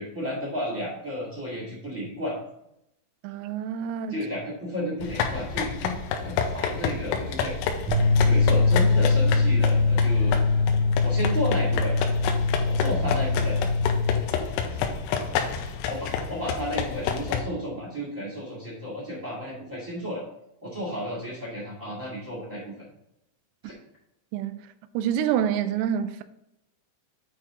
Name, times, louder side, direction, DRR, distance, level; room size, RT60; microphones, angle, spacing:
voice 1, 0.0-2.4 4.1-7.5 8.2-10.4 11.0-11.9 12.6-13.6 15.9-20.2 20.6-22.7 23.6-23.7, equal, 35° right, 1.3 m, -33 dB
voice 2, 3.2-4.2 24.3-24.6 24.9-26.2, right 9 dB, 85° right, 2.6 m, -27 dB
sound 1, 5.0-17.4, left 6 dB, 85° left, 2.5 m, -29 dB
sound 2, 7.9-14.1, left 3 dB, 55° right, 2.5 m, -22 dB
8.6 x 4.5 x 3.7 m
omnidirectional pair, 5.5 m